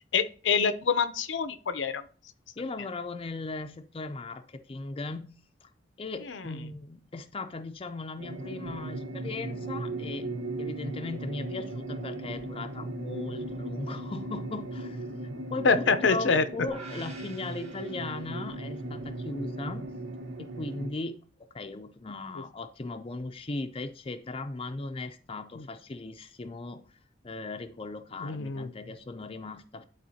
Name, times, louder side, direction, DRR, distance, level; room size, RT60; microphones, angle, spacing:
voice 1, 0.1-2.0 6.3-6.4 15.6-16.4 25.5-25.6 28.2-28.7, left 5 dB, 80° left, 0.6 m, -25 dB
voice 2, 2.6-5.7 6.0-10.3 10.6-15.0 15.5-19.9 20.4-26.9 27.2-29.8, left 3 dB, 30° left, 0.5 m, -38 dB
sound 1, 8.2-20.9, right 2 dB, 75° right, 0.8 m, -37 dB
sound 2, 16.7-18.9, right 4 dB, 35° right, 1.7 m, -49 dB
11.0 x 4.1 x 2.8 m
head